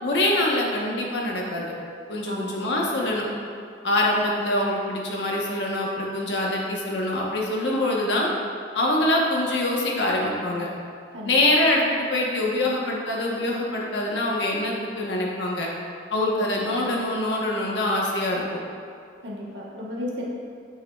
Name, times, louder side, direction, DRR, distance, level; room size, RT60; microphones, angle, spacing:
voice 1, 0.0-1.7 2.1-3.3 3.8-8.3 8.7-10.7 11.2-15.7 16.1-18.6, left 1 dB, 75° left, -2 dB, 1.1 m, -24 dB
voice 2, 2.3-2.6 11.1-11.4 16.4-16.6 19.2-20.2, left 1 dB, 75° right, -4 dB, 1.3 m, -34 dB
9.1 x 5.7 x 2.4 m, 2.3 s
head